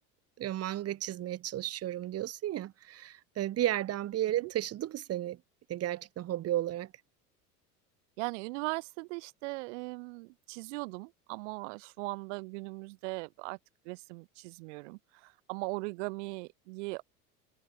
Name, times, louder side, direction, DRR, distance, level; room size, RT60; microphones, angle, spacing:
voice 1, 0.4-5.4 5.7-6.9, right 13 dB, 30° right, 1.6 m, -33 dB
voice 2, 8.2-13.6 13.8-17.0, right 28 dB, 50° right, 1.0 m, -39 dB
figure-of-eight pair, 75°, 47 cm